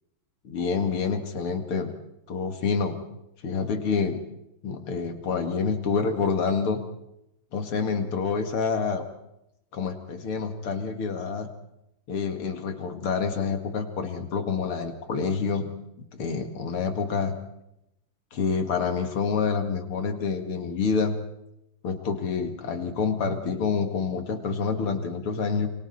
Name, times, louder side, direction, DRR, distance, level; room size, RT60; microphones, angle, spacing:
voice 1, 0.4-1.9 2.3-3.0 3.4-4.2 4.6-6.8 7.5-9.0 9.7-11.5 12.1-15.7 16.2-17.3 18.3-21.2 21.8-25.7, left 5 dB, 75° left, 6 dB, 2.9 m, -27 dB
28.5 x 25.0 x 4.3 m, 0.83 s
omnidirectional pair, 2.4 m